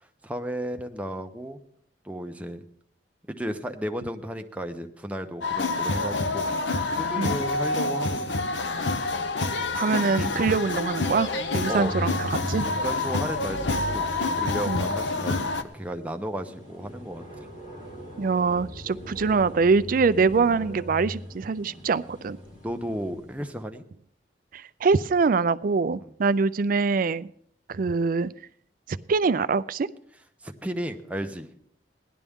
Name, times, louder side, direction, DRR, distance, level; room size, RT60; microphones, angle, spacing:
voice 1, 0.2-1.6 2.0-2.6 3.3-6.5 7.0-8.5 8.8-8.9 11.7-12.0 12.7-14.0 14.3-17.2 21.7-21.8 22.6-23.8 26.0-26.1 30.4-31.5, equal, 10° right, 5 dB, 0.8 m, -34 dB
sound 1, 5.4-15.6, left 3 dB, 90° left, 0.8 m, -27 dB
voice 2, 9.8-12.6 14.7-14.8 18.2-22.4 24.5-27.3 27.7-28.3 28.9-29.9, right 4 dB, 50° right, 15 dB, 0.4 m, -24 dB
sound 2, 11.4-23.3, equal, 45° left, 2.7 m, -39 dB
17.0 x 11.0 x 3.6 m, 0.63 s
head